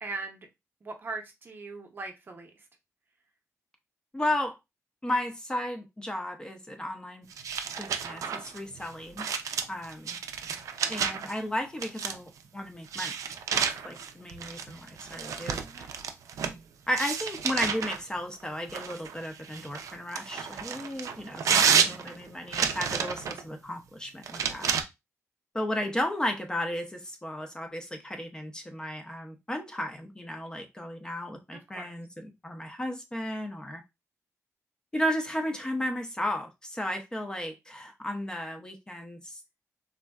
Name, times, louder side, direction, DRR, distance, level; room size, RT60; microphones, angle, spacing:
voice 1, 0.0-0.5 0.8-2.6 15.6-15.9 31.5-31.9, right 3 dB, 40° right, 0.6 m, -40 dB
voice 2, 4.1-4.6 5.0-7.3 7.8-9.3 9.7-10.2 10.9-13.2 13.5-15.9 16.9-24.8 25.5-33.8 34.9-39.4, left 1 dB, 15° left, 0.4 m, -34 dB
sound 1, 7.3-11.3 11.8-12.4 12.9-16.6 17.0-18.0 18.7-23.4 24.2-24.8, right 7 dB, 85° right, 0.3 m, -30 dB
3.4 x 2.1 x 2.2 m
wide cardioid pair, 135°, 5 cm